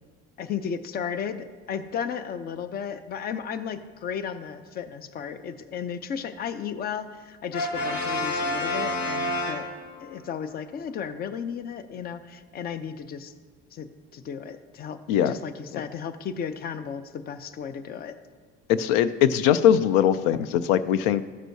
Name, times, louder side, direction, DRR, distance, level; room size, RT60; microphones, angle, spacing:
voice 1, 0.4-9.7 10.0-13.3 13.7-18.2, left 7 dB, 35° left, 12 dB, 0.5 m, -34 dB
Brass instrument, 7.5-10.2, left 1 dB, 70° left, 1.4 m, -29 dB
voice 2, 18.7-21.2, left 10 dB, 85° left, 14 dB, 0.4 m, -21 dB
13.5 x 6.2 x 2.7 m, 1.5 s
cardioid pair, 120°, 29 cm